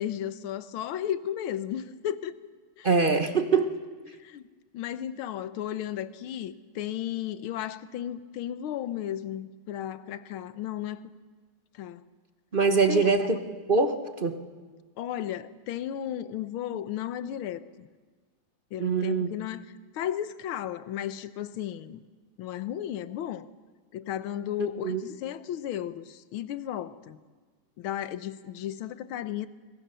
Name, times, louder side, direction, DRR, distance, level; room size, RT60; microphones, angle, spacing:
voice 1, 0.0-2.3 2.8-2.9 4.2-4.5 4.7-11.1 11.7-12.0 12.9-13.1 15.0-17.9 18.7-19.7 19.9-22.0 22.4-23.5 23.9-27.2 27.8-29.5, left 11 dB, 75° left, 1.7 m, -34 dB
voice 2, 2.8-3.8 12.5-13.4 13.7-14.4 18.8-19.3 24.8-25.0, right 4 dB, 35° right, 0.9 m, -23 dB
25.5 x 23.5 x 6.9 m
omnidirectional pair, 2.4 m